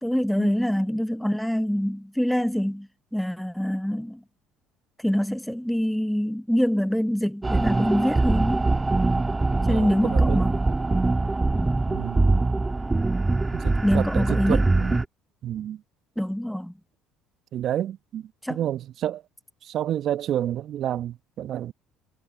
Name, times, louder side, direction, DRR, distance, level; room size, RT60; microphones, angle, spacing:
voice 1, 0.0-4.2 5.0-8.7 9.6-10.6 11.6-11.9 13.8-14.7 16.2-16.7 18.4-18.6, equal, ahead, 1.1 m, -25 dB
sound 1, 7.4-15.0, right 2 dB, 20° right, 1.9 m, -23 dB
voice 2, 9.7-10.5 11.9-12.5 13.5-15.0 15.4-15.8 17.5-19.2 19.6-21.7, right 11 dB, 55° right, 1.1 m, -30 dB
hypercardioid pair, 60°, 0 cm